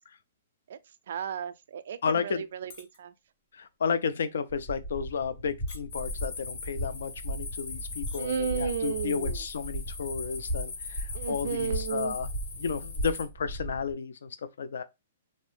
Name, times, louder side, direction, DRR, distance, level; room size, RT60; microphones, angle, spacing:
voice 1, 1.1-3.1 8.1-9.4 11.1-12.2, right 7 dB, 55° right, 0.3 m, -33 dB
voice 2, 2.0-2.4 3.5-12.3 12.6-14.8, left 6 dB, 75° left, 0.3 m, -32 dB
sound 1, 2.6-3.0 3.3-3.7 4.3-4.5 5.2-5.4 5.7-6.1 6.9-7.0 7.3-7.4 7.9-8.2 8.5-8.8, left 4 dB, 30° left, 0.6 m, -49 dB
sound 2, 4.5-13.9, right 1 dB, 90° left, 1.9 m, -37 dB
sound 3, 5.9-13.3, left 4 dB, 55° left, 0.9 m, -40 dB
2.6 x 2.6 x 3.3 m
hypercardioid pair, 175°, 0 cm